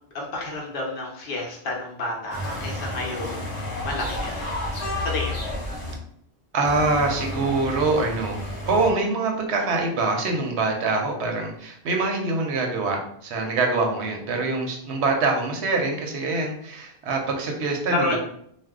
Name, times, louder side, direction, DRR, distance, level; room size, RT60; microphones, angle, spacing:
voice 1, 0.1-3.5 3.8-4.5 5.0-5.5 17.9-18.2, left 2 dB, 60° left, -1 dB, 0.9 m, -30 dB
sound 1, 2.3-5.9 6.6-8.9, left 1 dB, 30° left, 1.0 m, -31 dB
voice 2, 6.5-18.2, right 3 dB, 90° right, 2 dB, 0.9 m, -24 dB
2.6 x 2.0 x 3.5 m, 0.67 s
omnidirectional pair, 1.1 m